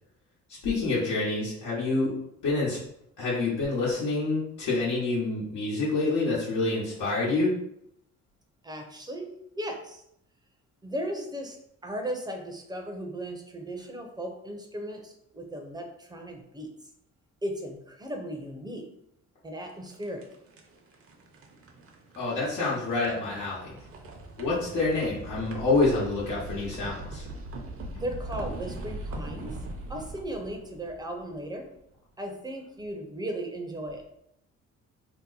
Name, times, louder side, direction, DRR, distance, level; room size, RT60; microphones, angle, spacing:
voice 1, 0.6-2.1 2.4-2.8 3.2-7.5 22.2-23.8 24.4-27.3, left 3 dB, 85° left, -8 dB, 1.1 m, -27 dB
voice 2, 8.6-10.0 10.8-11.6 11.8-16.7 17.4-18.9 19.4-20.2 27.9-29.6 29.9-31.7 32.2-34.0, right 1 dB, 15° right, 3 dB, 0.6 m, -36 dB
sound 1, 19.6-31.7, right 2 dB, 50° right, 0.7 m, -41 dB
2.8 x 2.1 x 3.9 m, 0.75 s
cardioid pair, 90°, 30 cm